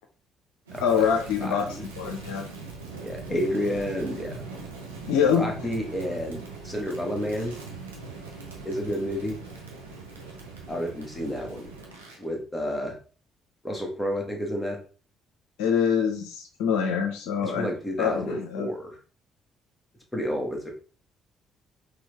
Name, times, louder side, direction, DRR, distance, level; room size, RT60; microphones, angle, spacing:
Crackle, 0.7-12.2, right 4 dB, 85° right, 0.7 m, -41 dB
voice 1, 0.8-2.4 5.1-5.5 15.6-17.7 18.0-18.7, left 7 dB, 70° left, 3 dB, 0.5 m, -25 dB
voice 2, 1.4-1.9 3.0-4.5 5.3-7.5 8.6-9.4 10.7-11.7 12.2-12.9 13.6-14.8 17.4-19.0 20.1-20.7, equal, 10° left, 0 dB, 1.4 m, -30 dB
3.8 x 3.0 x 3.4 m, 0.39 s
figure-of-eight pair, 45°, 0 cm